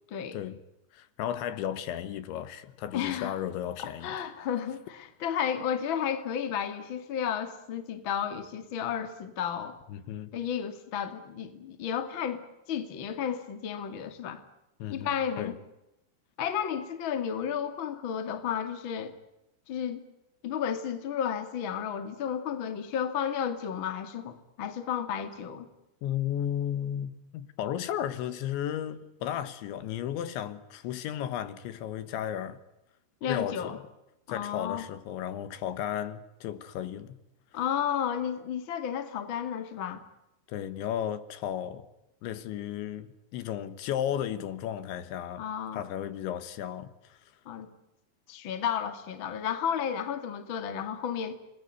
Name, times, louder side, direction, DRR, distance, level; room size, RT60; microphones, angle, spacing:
voice 1, 0.1-0.4 2.9-3.4 3.8-9.8 10.3-14.4 14.9-15.5 16.4-19.1 19.7-20.0 20.4-25.7 33.2-33.8 34.3-34.8 37.5-40.0 45.4-45.8 47.5-47.7 48.3-51.3, left 8 dB, 40° left, 2.1 m, -32 dB
voice 2, 0.9-4.2 9.9-10.3 14.8-15.6 26.0-32.6 33.3-33.8 34.3-37.2 40.5-41.9 42.2-45.5 45.7-47.3, left 10 dB, 75° left, 3.6 m, -34 dB
29.0 x 21.5 x 9.3 m
omnidirectional pair, 5.5 m